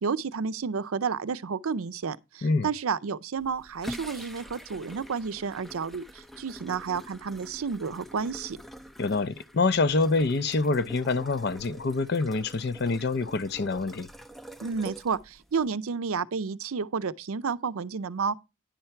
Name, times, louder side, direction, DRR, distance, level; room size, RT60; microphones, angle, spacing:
voice 1, 0.0-8.6 14.6-18.4, right 5 dB, 80° right, 0.5 m, -31 dB
sound 1, 3.4-15.7, equal, ahead, 0.4 m, -46 dB
voice 2, 9.0-14.1, left 3 dB, 50° left, 0.5 m, -26 dB
10.5 x 4.4 x 5.7 m
head